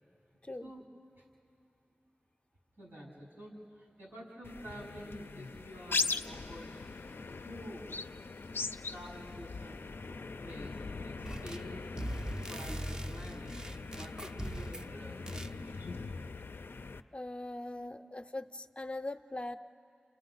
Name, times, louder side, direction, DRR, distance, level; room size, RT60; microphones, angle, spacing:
voice 1, 2.8-6.7 7.4-7.9 8.9-9.8 10.4-11.9 12.5-13.5 14.0-16.0 17.5-18.1, equal, 85° right, -5 dB, 5.9 m, -49 dB
sound 1, 4.4-17.0, left 4 dB, 75° left, 0.4 m, -40 dB
sound 2, 11.2-11.7 12.0-14.9 15.3-15.5, right 1 dB, 20° right, 0.5 m, -40 dB
voice 2, 17.1-19.6, left 2 dB, 30° left, 7 dB, 0.6 m, -41 dB
29.5 x 29.5 x 4.0 m, 2.9 s
wide cardioid pair, 55°, 4 cm